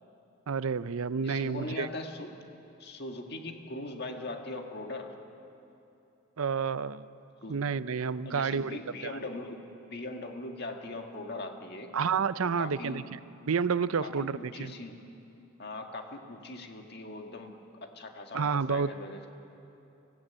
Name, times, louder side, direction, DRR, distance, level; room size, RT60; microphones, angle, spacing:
voice 1, 0.5-1.9 6.4-7.1 7.5-9.2 11.9-13.2 13.5-14.7 18.3-18.9, right 5 dB, 75° right, 15 dB, 0.6 m, -30 dB
voice 2, 1.2-2.4 2.8-5.1 7.4-7.6 8.3-11.9 12.4-13.1 14.0-15.0 15.6-17.5 17.8-19.3, left 2 dB, 50° left, 3 dB, 1.7 m, -40 dB
24.5 x 17.0 x 8.7 m, 2.8 s
head